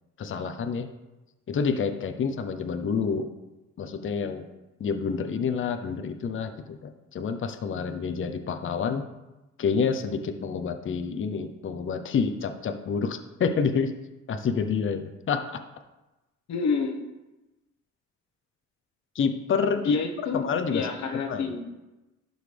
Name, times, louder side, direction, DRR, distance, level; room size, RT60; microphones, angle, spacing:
voice 1, 0.2-0.9 1.5-3.3 3.8-4.5 4.8-9.0 9.6-13.9 14.3-15.6 19.1-20.0 20.3-21.6, left 5 dB, 40° left, 7 dB, 0.7 m, -28 dB
voice 2, 16.5-17.0 19.8-20.4 20.7-21.6, left 5 dB, 65° left, 4 dB, 1.1 m, -28 dB
12.0 x 4.0 x 3.4 m, 1.0 s
cardioid pair, 90°, 30 cm